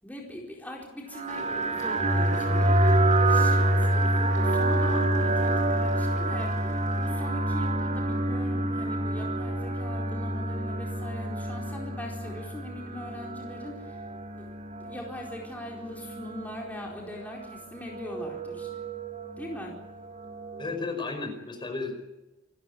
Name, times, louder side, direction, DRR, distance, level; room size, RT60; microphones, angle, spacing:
voice 1, 0.0-2.8 3.2-14.0 14.4-18.7 19.4-19.8, left 1 dB, 10° left, -2 dB, 4.4 m, -41 dB
sound 1, 1.1-20.8, right 1 dB, 35° right, 4.1 m, -28 dB
sound 2, 1.3-7.1, left 1 dB, 40° left, 5.8 m, -44 dB
voice 2, 20.6-22.0, left 3 dB, 25° left, 5 dB, 4.8 m, -33 dB
28.0 x 13.5 x 9.5 m, 1.0 s
head